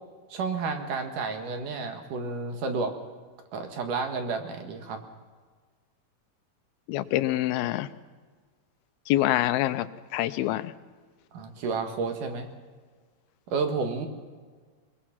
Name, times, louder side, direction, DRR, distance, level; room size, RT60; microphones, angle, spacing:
voice 1, 0.3-2.9 3.5-5.0 11.3-12.5 13.5-14.1, right 4 dB, 65° right, 5 dB, 3.0 m, -31 dB
voice 2, 6.9-7.9 9.1-10.7, left 15 dB, 85° left, 13 dB, 2.6 m, -26 dB
21.5 x 21.0 x 5.9 m, 1.5 s
omnidirectional pair, 4.3 m